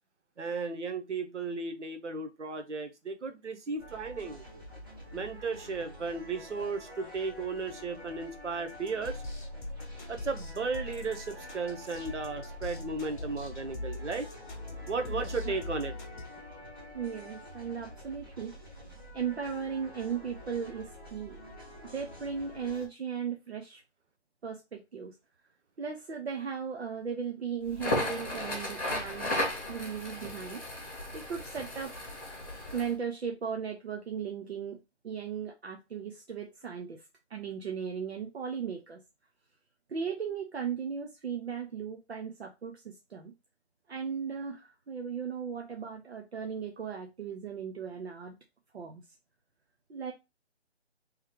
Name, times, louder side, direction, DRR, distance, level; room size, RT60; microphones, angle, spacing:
voice 1, 0.4-4.4 5.1-9.2 10.1-14.2 14.9-15.9, right 4 dB, 90° right, 7 dB, 1.0 m, -35 dB
sound 1, 3.8-22.9, equal, 20° right, 1.1 m, -48 dB
sound 2, 8.7-16.2, left 2 dB, 45° left, 0.9 m, -41 dB
voice 2, 15.1-15.5 16.9-18.5 19.1-21.4 21.9-23.8 24.4-25.1 25.8-29.3 29.7-30.6 31.1-31.9 32.7-37.0 37.3-39.0 39.9-43.3 43.9-48.3 48.7-49.0 49.9-50.1, right 7 dB, 65° right, 3 dB, 0.8 m, -37 dB
Crackle, 27.7-32.9, left 1 dB, 10° left, 0.9 m, -35 dB
3.2 x 3.2 x 3.6 m, 0.24 s
hypercardioid pair, 175°, 34 cm